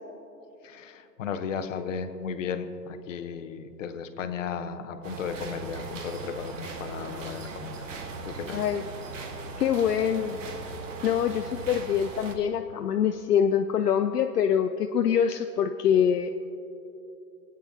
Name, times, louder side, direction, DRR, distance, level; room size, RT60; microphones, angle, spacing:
voice 1, 0.6-7.9 8.2-8.7, left 6 dB, 50° left, 8 dB, 1.0 m, -35 dB
sound 1, 5.0-12.4, right 3 dB, 50° right, 1.3 m, -39 dB
voice 2, 8.5-8.8 9.6-10.4 11.0-16.3, left 8 dB, 70° left, 6 dB, 0.6 m, -24 dB
26.5 x 9.1 x 2.8 m, 2.9 s
hypercardioid pair, 135°, 49 cm